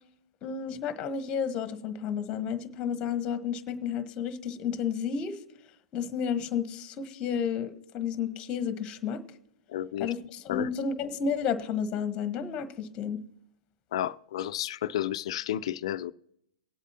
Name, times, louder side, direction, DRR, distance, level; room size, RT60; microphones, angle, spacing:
voice 1, 0.4-5.4 5.9-9.2 10.0-13.2, left 7 dB, 30° left, 1.2 m, -31 dB
voice 2, 9.7-10.1 10.5-10.7 13.9-16.1, left 12 dB, 60° left, 0.5 m, -31 dB
19.0 x 8.1 x 2.9 m
hypercardioid pair, 125°, 3 cm